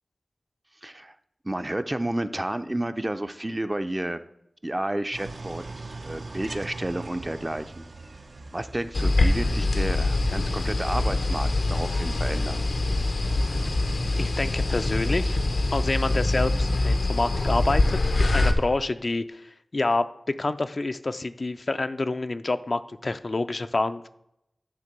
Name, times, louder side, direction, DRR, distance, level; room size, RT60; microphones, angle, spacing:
voice 1, 0.8-1.1 1.4-4.2 4.6-7.8 8.5-12.6, right 1 dB, 25° right, 10 dB, 0.5 m, -31 dB
sound 1, 5.1-18.4, right 3 dB, 70° right, 0.6 m, -45 dB
sound 2, 8.9-18.5, left 2 dB, 85° left, 0.8 m, -24 dB
voice 2, 14.2-15.4 15.7-20.0 20.4-24.1, left 2 dB, 55° left, 10 dB, 0.4 m, -28 dB
10.5 x 3.7 x 6.5 m, 0.81 s
wide cardioid pair, 65°, 0 cm